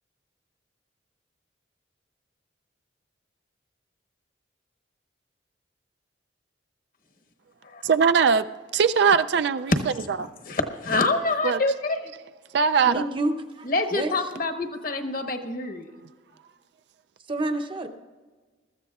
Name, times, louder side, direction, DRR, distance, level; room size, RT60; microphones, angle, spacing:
voice 1, 7.8-8.4 8.7-9.7 11.4-11.6 12.5-13.1, right 6 dB, 60° right, 11 dB, 0.4 m, -20 dB
voice 2, 10.2-12.1 13.6-15.9, left 2 dB, 45° left, 6 dB, 1.1 m, -26 dB
voice 3, 12.9-14.1 17.3-17.9, right 2 dB, 25° right, 6 dB, 0.7 m, -28 dB
21.0 x 14.0 x 2.4 m, 1.4 s
head